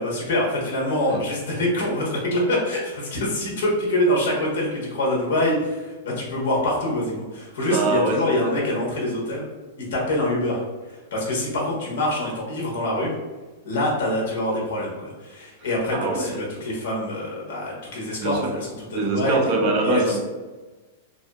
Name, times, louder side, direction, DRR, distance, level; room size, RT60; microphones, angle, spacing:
voice 1, 0.0-9.4 9.8-10.6 10.9-13.1 13.6-19.4 19.8-20.2, left 1 dB, 65° left, -3 dB, 1.0 m, -25 dB
voice 2, 7.7-8.5 15.9-16.4 18.2-18.5 18.9-20.2, right 2 dB, 35° right, 1 dB, 0.5 m, -23 dB
2.6 x 2.6 x 2.2 m, 1.3 s
supercardioid pair, 165°, 0 cm